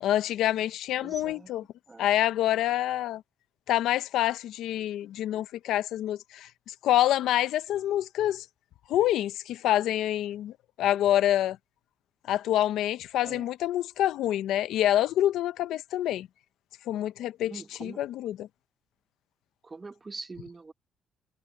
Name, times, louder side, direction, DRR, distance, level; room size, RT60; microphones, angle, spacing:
voice 1, 0.0-1.6 2.0-3.2 3.7-8.5 8.9-11.6 12.3-16.3 16.9-18.5, left 12 dB, 85° left, 0.7 m, -27 dB
voice 2, 1.0-1.5 1.9-2.2 13.2-13.5 17.5-18.0 19.6-20.7, right 3 dB, 25° right, 1.2 m, -43 dB
cardioid pair, 90°, 0 cm